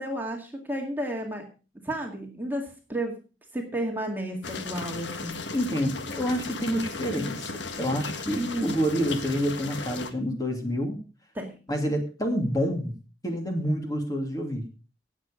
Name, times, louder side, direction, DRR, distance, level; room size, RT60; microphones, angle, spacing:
voice 1, 0.0-1.5 1.7-3.2 3.5-5.4 8.3-8.8 11.3-11.5, right 1 dB, 10° right, 1 dB, 2.1 m, -32 dB
sound 1, 4.4-10.1, left 3 dB, 80° left, 1.5 m, -36 dB
voice 2, 5.5-11.0 11.7-12.9 13.2-14.6, equal, 20° left, 3 dB, 2.5 m, -28 dB
17.5 x 7.5 x 5.1 m, 0.35 s
head